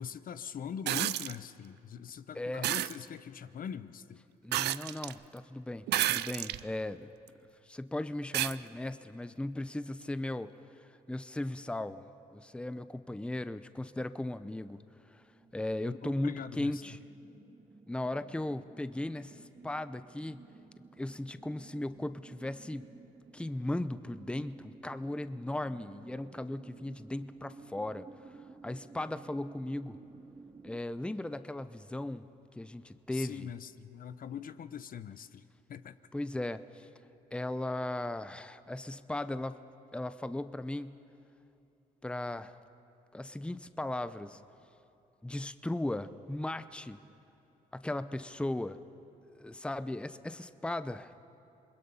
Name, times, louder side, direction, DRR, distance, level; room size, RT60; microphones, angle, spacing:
voice 1, 0.0-4.2 15.9-16.8 33.1-36.0, left 8 dB, 55° left, 13 dB, 0.7 m, -42 dB
sound 1, 0.9-1.4 2.6-3.0 4.5-5.1 5.9-6.6 7.3-7.4 8.3-8.6 10.0-10.1, right 15 dB, 80° right, 0.5 m, -30 dB
voice 2, 2.3-2.7 4.4-7.1 7.6-10.5 10.8-12.0 12.3-14.8 15.1-15.2 15.5-17.0 17.9-20.4 21.0-22.9 23.3-30.0 30.6-33.5 36.1-36.9 37.3-39.6 39.9-41.0 42.0-42.6 43.1-44.4 45.2-47.0 47.7-48.8 49.3-51.1, left 1 dB, 5° left, 13 dB, 0.7 m, -37 dB
sound 2, 15.1-30.8, right 4 dB, 25° right, 0.9 m, -54 dB
28.0 x 21.5 x 5.6 m, 2.8 s
cardioid pair, 75°, 17 cm